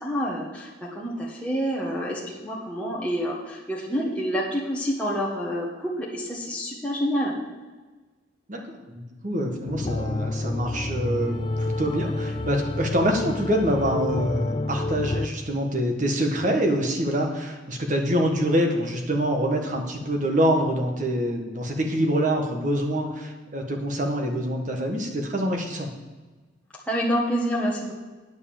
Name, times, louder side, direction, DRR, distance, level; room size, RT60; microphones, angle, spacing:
voice 1, 0.0-7.3 26.9-27.9, equal, 5° left, -5 dB, 1.4 m, -28 dB
voice 2, 8.9-25.9, equal, 40° right, 3 dB, 1.4 m, -25 dB
sound 1, 9.7-15.3, left 2 dB, 25° left, 0.3 m, -29 dB
9.4 x 5.5 x 7.1 m, 1.3 s
head